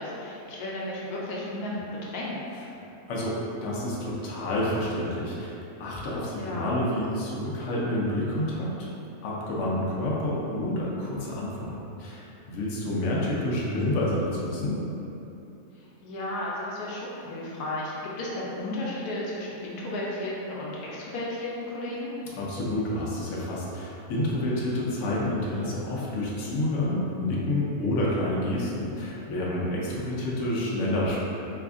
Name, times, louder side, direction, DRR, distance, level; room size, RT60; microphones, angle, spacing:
voice 1, 0.0-2.4 6.4-6.7 13.1-13.4 15.7-17.9 18.2-22.1, left 1 dB, 80° left, -5 dB, 1.1 m, -34 dB
voice 2, 3.1-8.9 9.2-14.8 22.4-31.2, left 1 dB, 60° left, -5 dB, 0.9 m, -29 dB
3.3 x 2.3 x 3.6 m, 2.9 s
omnidirectional pair, 1.6 m